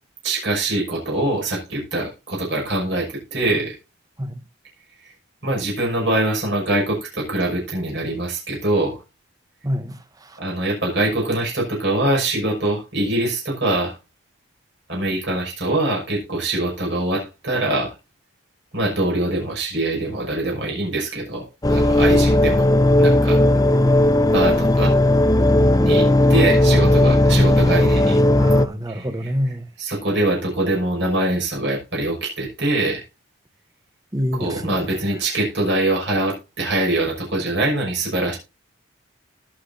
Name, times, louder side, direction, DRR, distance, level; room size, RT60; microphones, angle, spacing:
voice 1, 0.2-3.7 5.0-5.1 5.4-9.0 10.4-13.9 14.9-17.9 18.7-22.7 23.0-23.4 24.3-25.0 25.8-28.2 28.9-29.3 29.8-33.0 34.3-38.4, right 2 dB, 60° right, 6.0 m, -23 dB
voice 2, 9.6-10.4 28.4-29.6 34.1-34.8, equal, 20° right, 0.9 m, -27 dB
sound 1, 21.6-28.7, left 1 dB, 20° left, 0.6 m, -16 dB
19.5 x 6.6 x 2.7 m
head